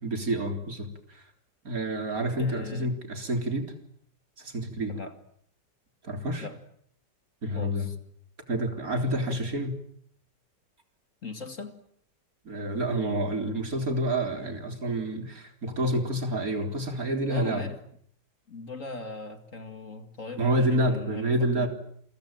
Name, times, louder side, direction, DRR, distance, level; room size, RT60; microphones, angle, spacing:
voice 1, 0.0-1.2 1.6-3.7 4.4-5.0 6.0-6.5 7.4-7.9 8.5-9.8 12.4-17.6 20.4-21.7, right 1 dB, 50° right, 6 dB, 4.2 m, -28 dB
voice 2, 2.4-2.9 4.9-5.2 6.4-6.6 7.6-8.0 11.2-11.8 17.3-17.8 18.5-21.7, left 3 dB, 45° left, 8 dB, 2.5 m, -39 dB
28.5 x 23.0 x 8.9 m, 0.65 s
omnidirectional pair, 1.9 m